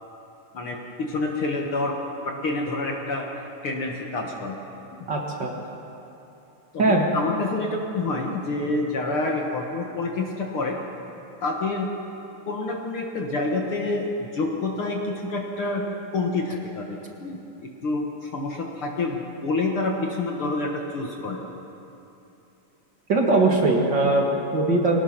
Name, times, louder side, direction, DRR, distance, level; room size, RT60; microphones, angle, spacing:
voice 1, 0.5-2.0 2.2-3.3 3.6-4.6 6.7-10.8 11.4-11.9 12.5-15.8 16.1-21.4, left 2 dB, 50° left, 1 dB, 1.9 m, -28 dB
voice 2, 5.1-5.6 6.8-7.1 23.1-25.0, right 2 dB, 40° right, 0 dB, 2.0 m, -21 dB
23.5 x 18.5 x 6.0 m, 2.9 s
omnidirectional pair, 3.7 m